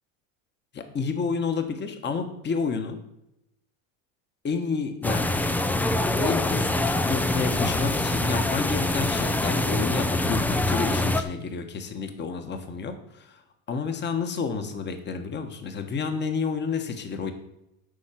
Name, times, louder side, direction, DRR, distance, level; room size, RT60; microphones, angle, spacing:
voice 1, 0.7-3.0 4.4-5.3 6.2-13.4 13.7-17.3, left 5 dB, 25° left, 7 dB, 1.3 m, -30 dB
sound 1, 5.0-11.2, left 2 dB, 5° left, 0.3 m, -25 dB
11.5 x 4.6 x 7.5 m, 0.85 s
supercardioid pair, 125°, 40 cm